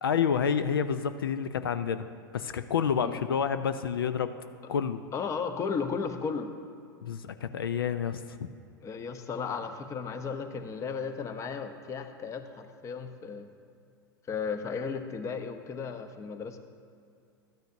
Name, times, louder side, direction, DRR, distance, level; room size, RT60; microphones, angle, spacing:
voice 1, 0.0-2.0 2.3-4.3 4.7-5.0 7.0-8.4, left 7 dB, 80° left, 11 dB, 0.4 m, -29 dB
voice 2, 5.1-6.5 8.8-13.5 14.3-16.6, left 5 dB, 25° left, 8 dB, 0.8 m, -35 dB
13.0 x 9.0 x 2.6 m, 2.3 s
hypercardioid pair, 95°, 12 cm